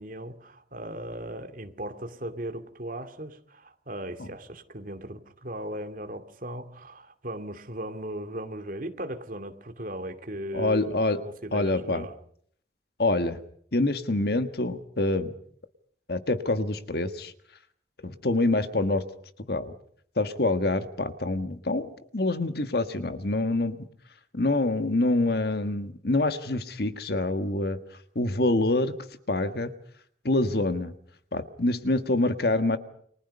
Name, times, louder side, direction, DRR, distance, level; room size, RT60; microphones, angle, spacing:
voice 1, 0.0-10.9 11.4-12.1, right 1 dB, 50° right, 2.5 m, -37 dB
voice 2, 10.5-11.2 11.5-12.0 13.0-13.4 13.7-15.3 16.1-17.3 18.0-19.0 19.5-19.7 20.2-23.9 24.3-27.8 28.1-29.0 29.3-29.7 30.2-30.9 31.3-32.8, left 2 dB, 60° left, 1.6 m, -26 dB
29.5 x 24.5 x 5.5 m
head